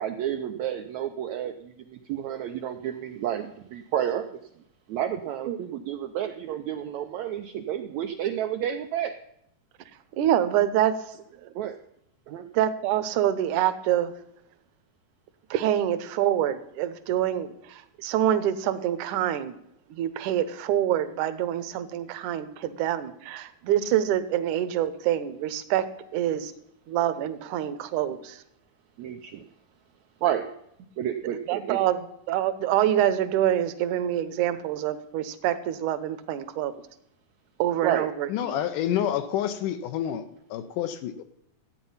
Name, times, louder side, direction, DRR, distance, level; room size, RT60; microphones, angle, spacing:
voice 1, 0.0-4.4 4.9-9.1 11.6-11.8 12.3-12.5 29.0-29.4 30.2-30.5 31.0-31.8 37.8-38.1, right 10 dB, 90° right, 6 dB, 1.6 m, -30 dB
voice 2, 10.2-11.0 12.5-14.1 15.5-19.5 19.9-25.9 26.1-26.5 26.9-28.4 31.5-36.7 37.6-38.6, right 11 dB, 70° right, 12 dB, 2.1 m, -26 dB
voice 3, 38.3-41.2, left 10 dB, 75° left, 9 dB, 2.1 m, -28 dB
13.5 x 8.9 x 5.6 m, 0.75 s
omnidirectional pair, 4.1 m